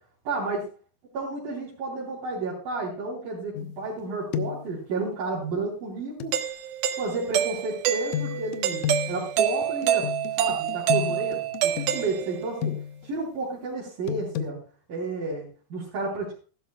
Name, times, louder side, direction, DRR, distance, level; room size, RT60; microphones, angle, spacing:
voice 1, 0.2-0.6 1.1-6.4 7.0-10.1 10.4-12.8 13.0-14.6 14.9-16.4, right 3 dB, 70° right, -6 dB, 5.1 m, -31 dB
sound 1, 3.6-4.0 4.3-4.7 6.2-6.4 8.1-13.1 14.1-14.5, left 10 dB, 85° left, 1.6 m, -32 dB
Doorbell, 6.3-12.7, right 10 dB, 90° right, 2.8 m, -27 dB
15.5 x 13.0 x 2.3 m, 0.34 s
omnidirectional pair, 4.2 m